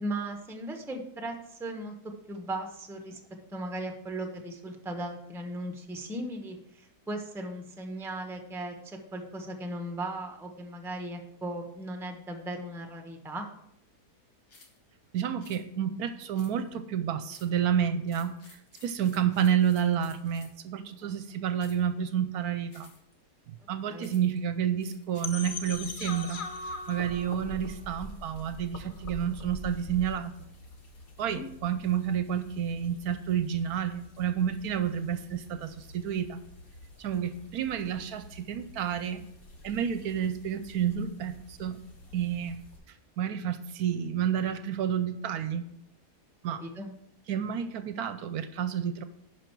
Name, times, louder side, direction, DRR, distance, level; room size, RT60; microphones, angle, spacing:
voice 1, 0.0-1.9 2.3-3.2 3.5-13.5 21.0-21.2 23.9-24.1 31.3-31.4 37.1-37.2 46.6-46.9, right 1 dB, ahead, 4 dB, 0.7 m, -37 dB
sound 1, 14.5-14.8 15.4-15.6 16.3-16.8 17.3-17.6 18.0-20.7 21.6-21.9 22.7-23.1 24.0-24.4 24.8-26.2, left 4 dB, 80° left, 2.0 m, -56 dB
voice 2, 15.1-22.9 23.5-26.4 26.9-30.3 31.2-36.4 37.0-39.2 39.6-41.8 42.1-42.6 43.2-45.6 46.4-46.6 47.3-49.0, right 9 dB, 75° right, 11 dB, 1.0 m, -30 dB
sound 2, 25.2-30.2, left 2 dB, 45° left, 0.7 m, -40 dB
sound 3, 25.5-42.8, left 1 dB, 60° left, 2.0 m, -51 dB
11.0 x 4.9 x 4.6 m, 0.77 s
omnidirectional pair, 1.7 m